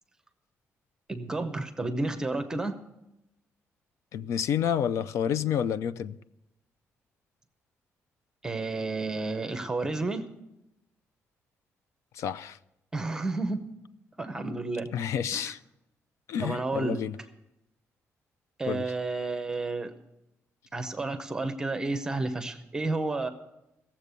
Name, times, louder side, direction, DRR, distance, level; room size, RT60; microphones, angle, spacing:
voice 1, 1.1-2.8 8.4-10.3 12.9-13.6 14.2-14.9 15.3-15.5 16.4-17.0 18.6-19.9 20.7-23.3, right 3 dB, 10° right, 0.7 m, -31 dB
voice 2, 4.1-6.2 12.1-12.6 14.9-15.6 16.3-17.1 18.7-18.9, left 8 dB, 70° left, 0.5 m, -29 dB
16.5 x 7.4 x 6.8 m
cardioid pair, 175°, 5 cm